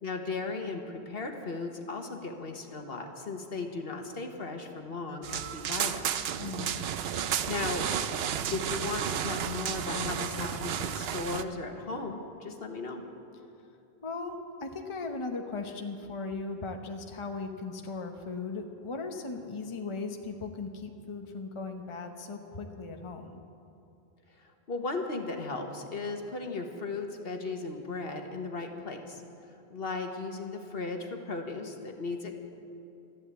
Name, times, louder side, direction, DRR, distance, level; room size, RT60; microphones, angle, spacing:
voice 1, 0.0-6.1 7.4-7.9 8.5-13.0 24.4-29.2 29.7-32.4, left 3 dB, 65° left, 4 dB, 1.5 m, -36 dB
sound 1, 5.2-11.4, right 9 dB, 75° right, 0.9 m, -32 dB
voice 2, 6.4-6.9 14.0-14.4 14.6-23.4, left 3 dB, 30° left, 4 dB, 0.9 m, -38 dB
13.5 x 11.5 x 8.2 m, 2.7 s
omnidirectional pair, 1.1 m